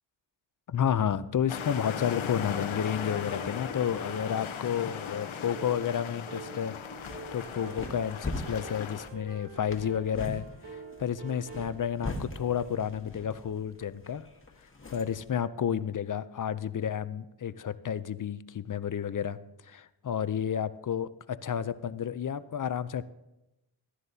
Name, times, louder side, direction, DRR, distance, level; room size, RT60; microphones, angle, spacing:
voice 1, 0.7-6.8 7.3-14.3 14.9-19.4 19.6-23.0, left 8 dB, 45° left, 15 dB, 0.5 m, -31 dB
sound 1, 1.5-9.1, left 8 dB, 85° left, 0.9 m, -38 dB
sound 2, 3.0-11.7, right 3 dB, 55° right, 2.8 m, -47 dB
sound 3, 6.8-15.3, left 2 dB, 25° left, 1.6 m, -42 dB
14.5 x 12.5 x 2.8 m, 0.95 s
cardioid pair, 65°, 47 cm